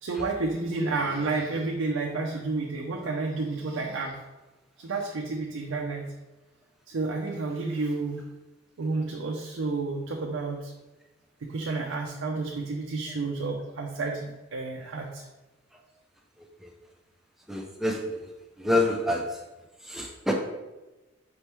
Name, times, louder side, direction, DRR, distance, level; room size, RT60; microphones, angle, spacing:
voice 1, 0.0-4.2 4.8-6.1 6.9-8.2 8.8-10.7 11.4-15.2, right 3 dB, 80° right, 0 dB, 0.5 m, -30 dB
voice 2, 17.5-18.3 18.6-19.4 19.8-20.3, left 1 dB, ahead, 0 dB, 0.4 m, -27 dB
5.2 x 3.3 x 3.0 m, 1.1 s
head